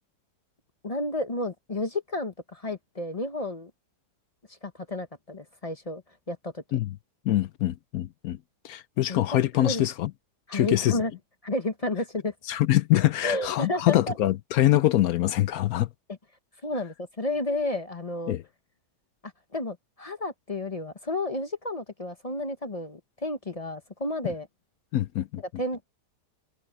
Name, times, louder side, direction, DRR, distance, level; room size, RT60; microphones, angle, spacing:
voice 1, 0.8-3.7 4.6-6.0 6.3-6.6 9.1-9.2 9.6-9.8 10.5-11.1 11.4-12.3 13.2-14.2 16.6-18.4 19.5-24.5 25.6-25.8, left 2 dB, 25° left, 1.0 m, -31 dB
voice 2, 7.3-8.4 8.6-10.1 10.5-11.0 12.5-15.9 18.3-18.4 24.9-25.4, left 14 dB, 70° left, 1.0 m, -24 dB
omnidirectional pair, 1.7 m